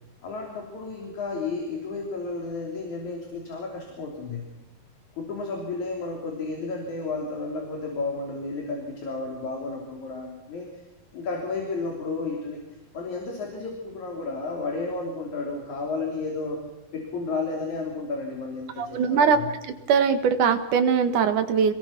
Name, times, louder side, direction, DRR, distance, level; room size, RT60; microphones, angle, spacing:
voice 1, 0.2-4.5 5.2-10.7 11.1-12.6 12.9-16.6 16.9-19.5, left 3 dB, 70° left, 0 dB, 4.7 m, -32 dB
voice 2, 18.8-19.4 19.6-21.7, right 6 dB, 80° right, 9 dB, 3.2 m, -21 dB
26.5 x 21.5 x 6.0 m, 1.0 s
omnidirectional pair, 3.5 m